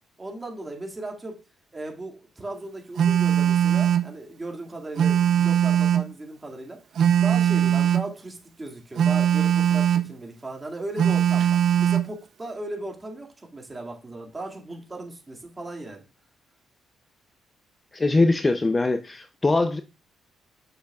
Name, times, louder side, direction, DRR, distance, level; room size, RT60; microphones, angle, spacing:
voice 1, 0.2-1.4 1.7-6.8 7.2-16.0, right 2 dB, 20° right, 2.1 m, -37 dB
Telephone, 3.0-4.1 5.0-6.1 7.0-8.1 9.0-10.1 11.0-12.1, right 10 dB, 65° right, 0.6 m, -20 dB
voice 2, 17.9-19.8, left 2 dB, 25° left, 0.5 m, -22 dB
7.8 x 6.4 x 2.4 m
cardioid pair, 90°, 0 cm